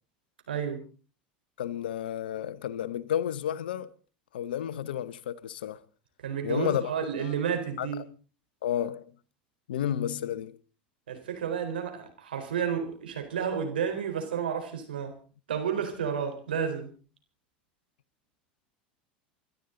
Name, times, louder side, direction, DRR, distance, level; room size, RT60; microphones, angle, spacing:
voice 1, 0.5-0.8 6.2-8.0 11.1-15.1 15.5-16.9, right 7 dB, 85° right, 4.2 m, -31 dB
voice 2, 1.6-3.9 4.3-5.8 6.4-6.9 7.2-7.3 7.8-7.9 8.6-9.0 9.7-10.6, left 10 dB, 80° left, 1.0 m, -31 dB
29.0 x 12.0 x 3.9 m
hypercardioid pair, 90°, 5 cm